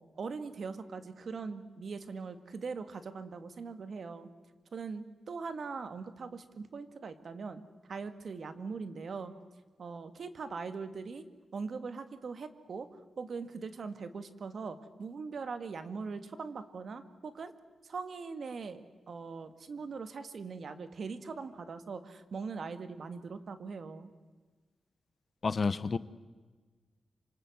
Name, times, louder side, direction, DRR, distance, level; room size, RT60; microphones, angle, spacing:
voice 1, 0.0-4.3 4.7-7.6 7.9-9.3 9.8-11.2 11.5-17.5 17.8-24.1, right 4 dB, 60° right, 10 dB, 2.0 m, -41 dB
voice 2, 25.4-26.0, left 4 dB, 45° left, 16 dB, 0.9 m, -29 dB
27.0 x 26.5 x 8.0 m, 1.4 s
wide cardioid pair, 105°, 0 cm